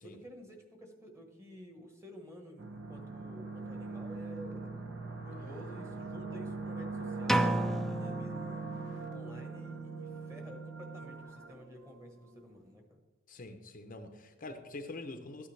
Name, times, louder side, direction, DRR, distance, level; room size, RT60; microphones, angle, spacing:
voice 1, 0.0-8.7 9.1-13.0, equal, 15° right, 4 dB, 1.3 m, -51 dB
sound 1, 2.6-12.3, right 3 dB, 65° right, 1.2 m, -41 dB
sound 2, 7.3-9.2, right 1 dB, ahead, 0.3 m, -32 dB
voice 2, 13.3-15.5, left 2 dB, 45° left, 6 dB, 0.7 m, -45 dB
13.5 x 9.2 x 3.3 m, 1.2 s
head